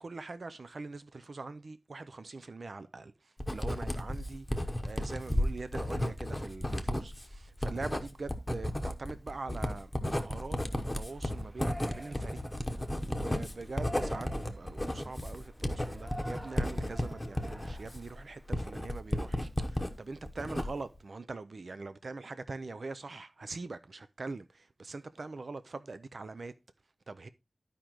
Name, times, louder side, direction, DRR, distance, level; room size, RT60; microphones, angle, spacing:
voice 1, 0.0-10.6 10.9-26.5 27.1-27.3, right 3 dB, 60° right, 0.5 m, -43 dB
Writing, 3.4-19.9 20.3-21.0, left 1 dB, 15° left, 0.9 m, -34 dB
Yell, 11.1-18.8, equal, 15° right, 0.9 m, -49 dB
12.0 x 5.0 x 3.0 m
wide cardioid pair, 95°, 0 cm